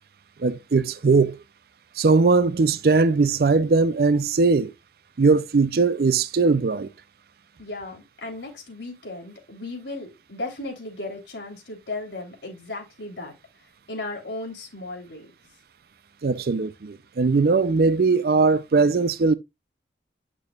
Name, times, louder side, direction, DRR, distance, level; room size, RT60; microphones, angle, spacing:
voice 1, 0.4-1.4 2.0-4.7 5.2-6.9 16.2-19.4, right 4 dB, 60° right, 0.4 m, -20 dB
voice 2, 7.6-13.3 13.9-15.3, left 2 dB, 90° left, 3.1 m, -35 dB
8.6 x 6.1 x 2.3 m
head